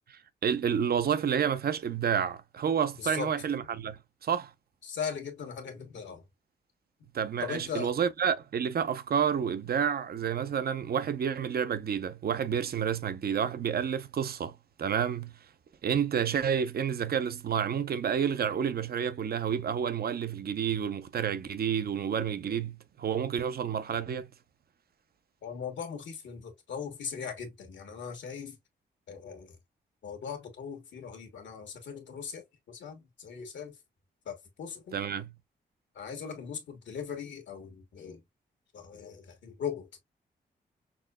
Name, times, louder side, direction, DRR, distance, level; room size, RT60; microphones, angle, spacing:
voice 1, 0.1-4.5 7.1-15.4 15.8-24.3 34.9-35.3, right 8 dB, 55° right, 0.6 m, -30 dB
voice 2, 2.9-3.3 4.8-6.2 7.4-7.9 22.5-22.6 25.4-28.6 29.1-29.6 30.0-33.8 34.2-35.0 35.9-38.2 38.7-40.0, left 7 dB, 85° left, 1.3 m, -39 dB
6.0 x 2.1 x 2.3 m
cardioid pair, 60°, 18 cm